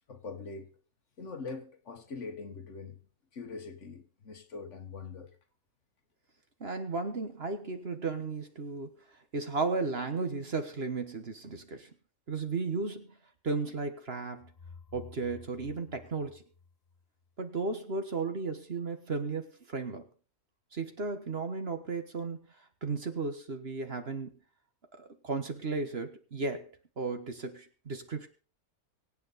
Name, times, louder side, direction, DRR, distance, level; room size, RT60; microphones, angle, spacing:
voice 1, 0.1-0.7 1.2-3.0 3.3-5.3, left 4 dB, 55° left, 1.6 m, -42 dB
voice 2, 6.6-8.9 9.3-11.9 12.3-13.1 13.4-14.5 14.9-16.4 17.4-20.1 20.7-22.5 22.8-24.3 24.9-26.7 27.0-28.3, right 4 dB, 45° right, 1.5 m, -34 dB
sound 1, 14.4-17.3, left 5 dB, 35° left, 0.8 m, -52 dB
24.0 x 8.4 x 4.1 m
omnidirectional pair, 1.6 m